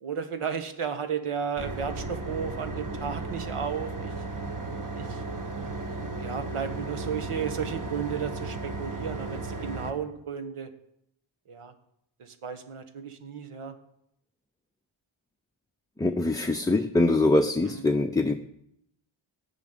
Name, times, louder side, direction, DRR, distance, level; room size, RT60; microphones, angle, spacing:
voice 1, 0.0-4.1 4.9-5.2 6.1-10.7 11.5-11.7 12.2-13.7 17.6-17.8, right 7 dB, 85° right, 7 dB, 1.5 m, -34 dB
sound 1, 1.6-9.9, right 3 dB, 40° right, 1.6 m, -35 dB
voice 2, 16.0-18.3, left 2 dB, 10° left, 5 dB, 0.5 m, -23 dB
14.5 x 6.2 x 9.0 m, 0.76 s
wide cardioid pair, 145°, 50 cm